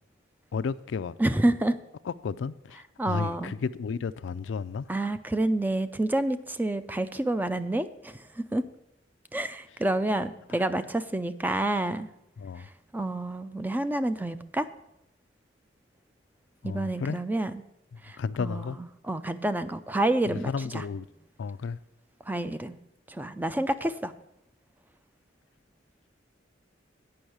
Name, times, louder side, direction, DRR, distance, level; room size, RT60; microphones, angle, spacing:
voice 1, 0.5-1.2 2.1-4.9 10.5-10.6 12.4-12.7 16.6-17.2 18.2-18.8 20.3-21.1 21.4-21.8, left 5 dB, 75° left, 0.4 m, -33 dB
voice 2, 1.2-1.8 3.0-3.5 4.9-8.6 9.3-12.1 12.6-12.7 12.9-14.7 16.6-17.6 18.0-20.8 22.3-22.8 23.1-24.1, right 1 dB, 10° right, 0.4 m, -28 dB
8.7 x 5.4 x 7.9 m
head